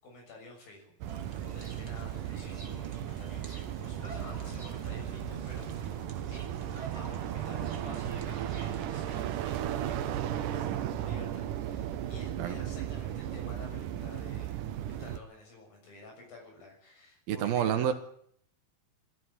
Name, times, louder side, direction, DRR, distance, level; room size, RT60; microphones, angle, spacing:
voice 1, 0.0-14.7 15.0-17.9, left 2 dB, 75° left, 8.5 m, -51 dB
sound 1, 1.0-15.2, right 11 dB, 70° right, 2.4 m, -35 dB
sound 2, 1.1-8.8, right 2 dB, 15° right, 1.8 m, -48 dB
voice 2, 17.3-17.9, right 9 dB, 85° right, 3.5 m, -28 dB
20.0 x 13.5 x 9.7 m
omnidirectional pair, 4.2 m